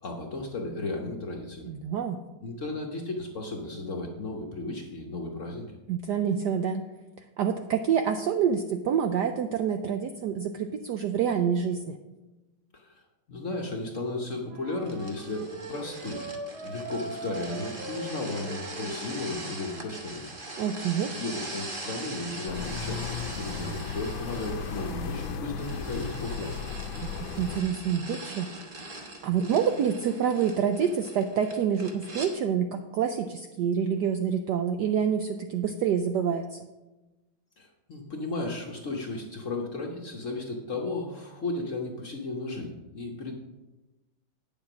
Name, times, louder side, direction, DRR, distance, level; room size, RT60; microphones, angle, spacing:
voice 1, 0.0-1.7 2.4-5.8 12.7-13.0 13.3-16.2 16.6-20.3 21.0-26.6 37.6-43.3, left 2 dB, 50° left, 1 dB, 1.0 m, -35 dB
voice 2, 1.6-2.2 5.9-6.9 7.4-12.0 20.6-21.1 27.0-28.5 29.2-36.6, right 7 dB, 90° right, 7 dB, 0.9 m, -27 dB
Wind instrument woodwind instrument, 14.5-19.8, right 1 dB, 70° right, 2.2 m, -40 dB
sound 1, 14.8-32.3, right 2 dB, 30° right, 1.1 m, -42 dB
sound 2, 22.5-27.6, left 6 dB, 70° left, 1.4 m, -35 dB
9.0 x 7.2 x 5.9 m, 1.1 s
omnidirectional pair, 2.4 m